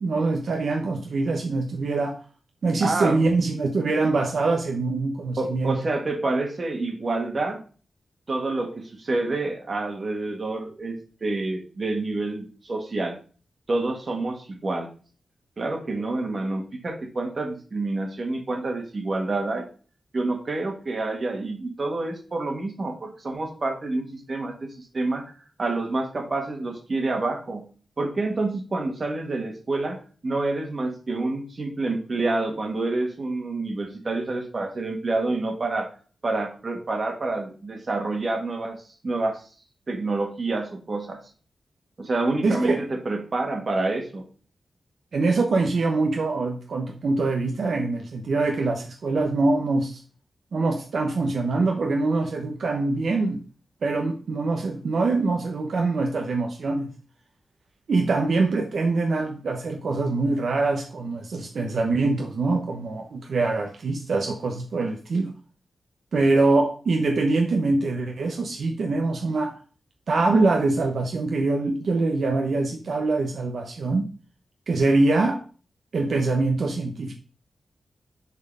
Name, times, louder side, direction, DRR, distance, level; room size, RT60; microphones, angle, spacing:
voice 1, 0.0-2.2 2.6-5.8 42.4-42.8 45.1-50.0 50.5-53.4 53.8-56.9 57.9-65.3 66.1-69.6 70.1-74.1 74.7-75.4 75.9-77.1, right 3 dB, 60° right, 0.9 m, -24 dB
voice 2, 2.8-3.2 5.4-7.6 8.3-13.2 13.7-14.9 15.6-19.7 20.1-25.3 25.6-27.7 28.0-35.9 36.2-39.4 39.9-41.2 42.0-44.2, right 2 dB, 35° right, 1.7 m, -28 dB
7.2 x 4.4 x 5.4 m
wide cardioid pair, 180°, 0 cm